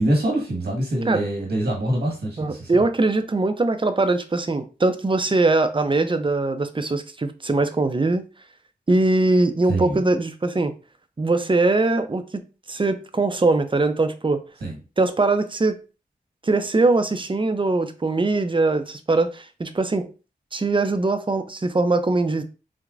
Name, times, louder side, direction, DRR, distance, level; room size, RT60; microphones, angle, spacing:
voice 1, 0.0-2.7 9.7-10.0 14.6-14.8, right 1 dB, 90° right, -2 dB, 1.4 m, -24 dB
voice 2, 2.4-8.3 8.9-10.7 11.2-14.4 15.0-15.8 16.4-20.1 20.5-22.4, right 2 dB, 30° right, 9 dB, 0.5 m, -21 dB
4.6 x 2.1 x 2.5 m, 0.33 s
cardioid pair, 40°, 16 cm